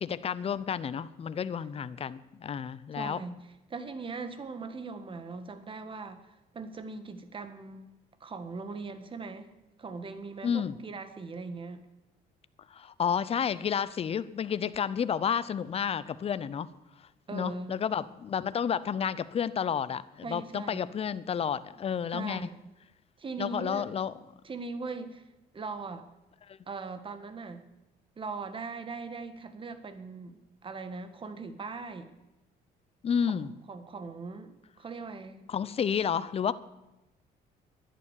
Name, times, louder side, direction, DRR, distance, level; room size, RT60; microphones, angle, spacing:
voice 1, 0.0-3.2 10.4-10.7 12.7-16.7 17.3-22.5 23.4-24.1 26.5-26.6 33.0-33.5 35.5-36.5, left 7 dB, 35° left, 16 dB, 0.7 m, -31 dB
voice 2, 2.9-3.4 3.7-7.9 8.2-9.5 9.8-11.8 17.3-17.7 20.2-20.8 22.1-22.6 23.2-23.9 24.4-25.2 25.5-26.0 26.7-27.7 28.2-32.1 33.3-35.5, right 4 dB, 30° right, 10 dB, 1.6 m, -40 dB
11.5 x 10.0 x 9.9 m, 0.98 s
cardioid pair, 110°, 17 cm